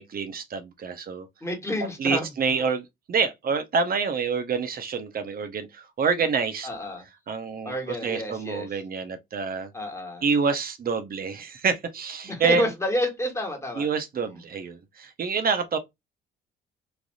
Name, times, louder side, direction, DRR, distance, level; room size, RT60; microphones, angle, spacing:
voice 1, 0.0-1.3 2.0-6.7 7.3-9.7 10.2-12.6 13.8-15.8, right 5 dB, 50° right, 0.7 m, -27 dB
voice 2, 1.4-2.3 6.6-7.0 7.6-8.8 9.7-10.2 12.3-13.9 14.2-14.4, left 1 dB, 15° left, 1.3 m, -29 dB
3.3 x 2.5 x 2.5 m
cardioid pair, 90°, 20 cm